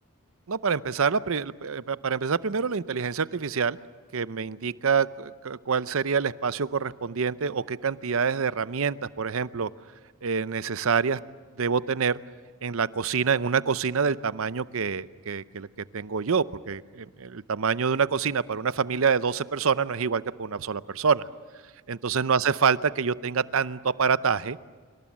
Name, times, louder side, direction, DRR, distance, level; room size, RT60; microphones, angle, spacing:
voice 1, 0.5-3.8 4.1-9.7 10.2-11.2 11.6-12.2 12.6-15.7 15.9-21.3 21.9-24.6, right 6 dB, 65° right, 16 dB, 0.7 m, -26 dB
26.0 x 24.5 x 7.4 m, 1.5 s
head